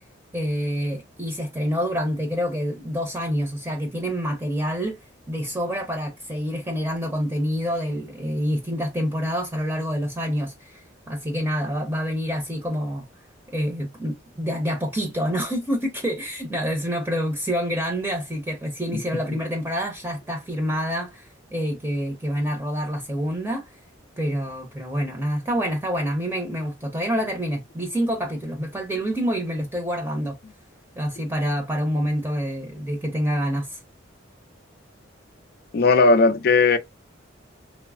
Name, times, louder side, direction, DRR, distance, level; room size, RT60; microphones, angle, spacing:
voice 1, 0.3-5.0 5.3-13.1 13.5-23.7 24.2-30.4 31.0-33.8, equal, 10° right, 0.6 m, -27 dB
voice 2, 35.7-36.8, left 4 dB, 50° left, 0.3 m, -16 dB
3.1 x 2.0 x 2.3 m
head